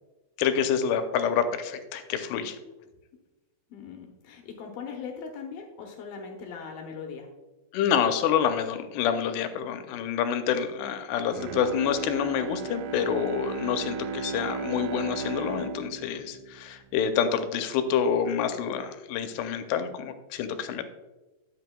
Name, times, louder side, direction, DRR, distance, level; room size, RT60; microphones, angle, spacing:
voice 1, 0.4-2.6 7.7-20.8, left 8 dB, 90° left, 8 dB, 2.8 m, -27 dB
voice 2, 3.7-7.3, left 6 dB, 75° left, 1 dB, 2.5 m, -40 dB
Bowed string instrument, 11.2-17.5 17.9-18.0, right 5 dB, 80° right, 2.2 m, -36 dB
11.0 x 8.0 x 2.2 m, 1.1 s
omnidirectional pair, 4.7 m